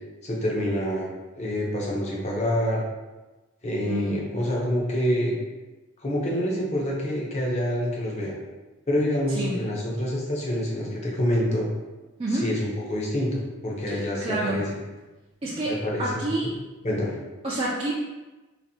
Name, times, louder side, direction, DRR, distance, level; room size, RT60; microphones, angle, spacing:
voice 1, 0.2-1.1 1.3-2.8 3.6-5.3 6.0-8.3 8.9-11.7 12.3-14.7 15.7-16.2 16.8-17.1, equal, 30° left, -3 dB, 0.6 m, -27 dB
voice 2, 3.9-4.3 9.4-9.6 12.2-12.5 13.9-14.6 15.4-16.5 17.4-17.9, right 2 dB, 25° right, -7 dB, 0.4 m, -28 dB
4.0 x 2.6 x 2.7 m, 1.2 s
head